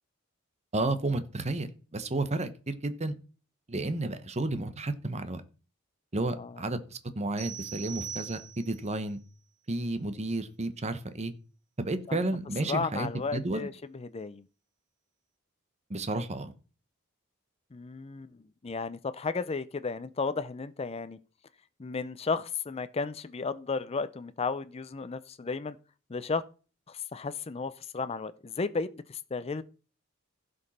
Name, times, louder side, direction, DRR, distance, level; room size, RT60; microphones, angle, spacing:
voice 1, 0.7-3.1 3.7-5.4 6.1-9.2 9.7-11.3 11.8-13.7 15.9-16.5, right 2 dB, 35° right, 1.0 m, -32 dB
sound 1, 7.4-8.9, right 9 dB, 15° right, 3.8 m, -41 dB
voice 2, 12.7-14.4 17.7-18.3 18.6-21.2 21.8-25.8 26.1-26.4 26.9-29.6, left 4 dB, 30° left, 0.5 m, -34 dB
15.5 x 5.2 x 4.2 m
head